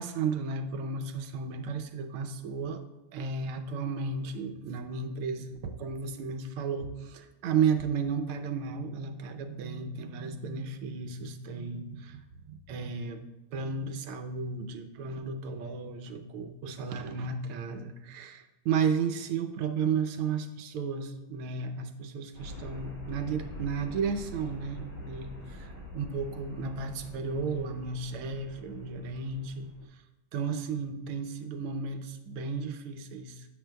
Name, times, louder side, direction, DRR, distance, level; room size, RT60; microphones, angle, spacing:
voice 1, 0.0-2.8 3.1-12.2 12.5-13.2 13.5-29.7 30.3-33.5, right 5 dB, 85° right, 7 dB, 1.6 m, -33 dB
sound 1, 22.3-29.8, left 1 dB, 55° left, 4.3 m, -45 dB
15.0 x 7.9 x 2.2 m, 1.1 s
omnidirectional pair, 2.3 m